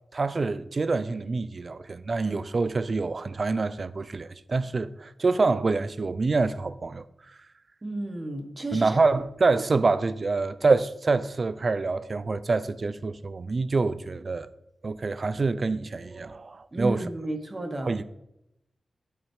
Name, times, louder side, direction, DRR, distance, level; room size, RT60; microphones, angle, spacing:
voice 1, 0.1-7.0 8.7-14.5 14.8-17.0 17.8-18.0, right 3 dB, 40° right, 0.4 m, -26 dB
voice 2, 7.8-8.9 16.7-17.9, right 1 dB, 25° right, 1.3 m, -32 dB
8.9 x 6.7 x 4.7 m
wide cardioid pair, 120°, 0 cm